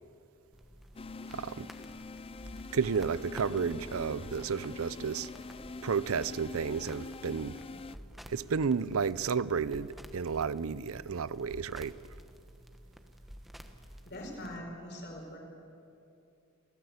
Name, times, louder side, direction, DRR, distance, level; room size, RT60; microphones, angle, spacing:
sound 1, 0.5-14.6, equal, ahead, 1.2 m, -51 dB
sound 2, 1.0-8.0, left 3 dB, 25° left, 0.4 m, -45 dB
voice 1, 1.3-1.7 2.7-5.3 5.8-7.6 8.3-12.0, right 6 dB, 80° right, 0.6 m, -32 dB
voice 2, 14.0-15.4, left 1 dB, 55° left, 5.0 m, -42 dB
28.0 x 13.5 x 8.2 m
head